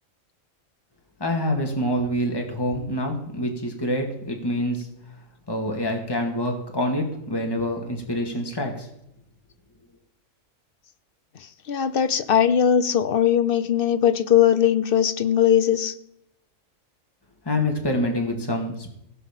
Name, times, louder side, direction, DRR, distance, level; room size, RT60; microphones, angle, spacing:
voice 1, 1.2-4.9 5.5-8.9 17.5-19.0, left 1 dB, 15° left, 2 dB, 2.1 m, -26 dB
voice 2, 11.7-15.9, left 9 dB, 50° left, 12 dB, 0.9 m, -20 dB
16.5 x 5.8 x 7.4 m, 0.79 s
omnidirectional pair, 1.4 m